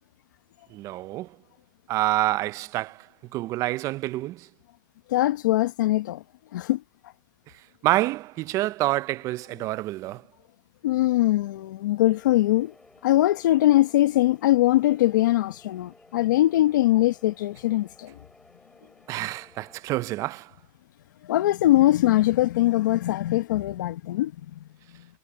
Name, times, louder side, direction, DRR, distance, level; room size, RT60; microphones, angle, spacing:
voice 1, 0.7-1.4 1.9-4.5 7.8-10.2 19.1-20.5, right 17 dB, 30° right, 0.4 m, -27 dB
voice 2, 5.1-6.2 6.5-6.8 10.8-12.7 13.0-18.1 21.2-24.3, left 15 dB, 80° left, 0.9 m, -22 dB
sound 1, 12.1-19.8, left 2 dB, 5° left, 5.5 m, -57 dB
supercardioid pair, 145°, 10 cm